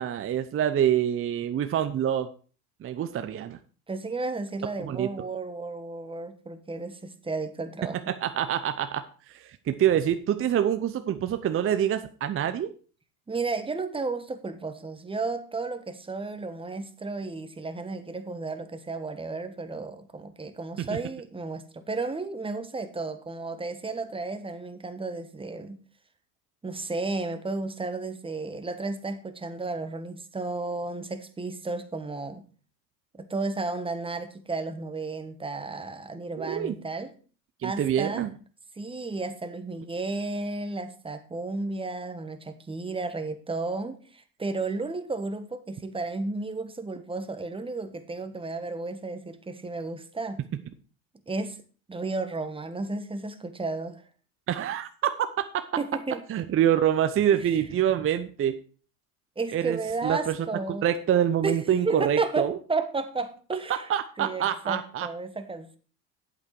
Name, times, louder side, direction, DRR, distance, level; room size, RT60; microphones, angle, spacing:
voice 1, 0.0-2.3 2.8-3.6 4.8-5.1 8.1-12.7 20.8-20.9 36.4-36.7 37.6-38.3 54.5-54.9 56.3-58.6 59.5-59.8 60.0-60.4 60.8-62.6 63.9-65.1, right 10 dB, 30° right, 0.7 m, -26 dB
voice 2, 3.9-8.1 13.3-25.8 26.6-32.5 33.1-37.1 37.6-38.3 38.7-50.4 51.3-51.6 51.9-54.0 55.8-56.3 57.4-57.5 59.4-60.8 61.4-61.6 61.8-63.9 64.2-65.8, right 3 dB, 10° right, 1.2 m, -33 dB
8.4 x 8.3 x 4.6 m
hypercardioid pair, 85°, 47 cm